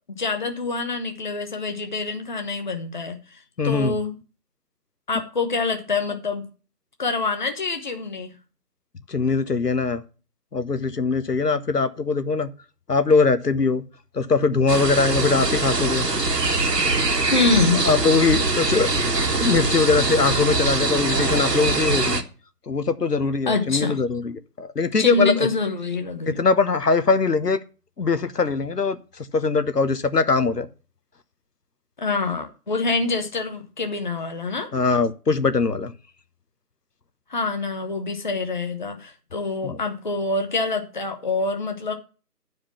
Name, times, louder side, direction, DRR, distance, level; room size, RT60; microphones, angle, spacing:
voice 1, 0.1-3.2 3.6-4.1 5.1-6.5 7.0-8.3 17.3-17.8 23.5-24.0 25.0-26.4 32.0-34.7 37.3-41.9, left 3 dB, 30° left, 1.0 m, -25 dB
voice 2, 3.6-4.0 9.1-10.0 10.5-12.5 12.9-13.8 14.1-16.1 17.8-18.9 19.4-22.2 22.7-25.5 26.3-27.6 28.0-30.7 34.7-35.9 39.6-39.8, left 4 dB, 80° left, 1.3 m, -21 dB
sound 1, 14.7-22.2, right 3 dB, 80° right, 1.9 m, -23 dB
10.0 x 5.0 x 7.0 m
figure-of-eight pair, 160°, 47 cm